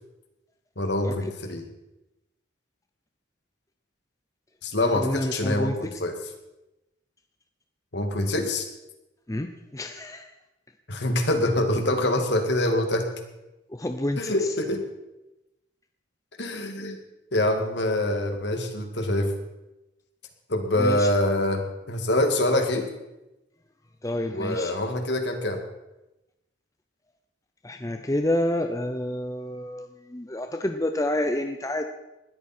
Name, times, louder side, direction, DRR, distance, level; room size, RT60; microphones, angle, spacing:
voice 1, 0.8-1.6 4.6-6.1 7.9-8.7 10.9-13.1 14.2-14.8 16.4-17.0 17.3-19.3 20.5-22.8 24.3-25.6, left 1 dB, 60° left, 5 dB, 2.2 m, -25 dB
voice 2, 4.8-5.8 9.3-10.3 13.7-14.3 20.8-21.1 24.0-24.7 27.6-31.9, left 1 dB, 15° left, 6 dB, 0.7 m, -28 dB
20.0 x 13.5 x 4.5 m, 0.98 s
head